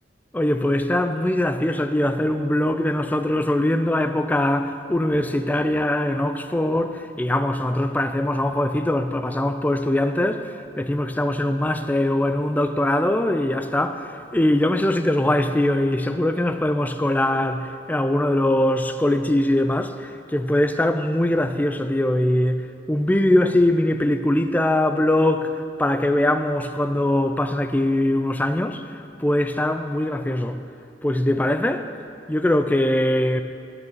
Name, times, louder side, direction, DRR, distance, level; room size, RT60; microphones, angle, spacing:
voice 1, 0.3-28.8 29.2-30.6 31.0-31.9 32.3-33.4, left 1 dB, 10° left, 0.3 m, -22 dB
8.9 x 6.7 x 6.7 m
head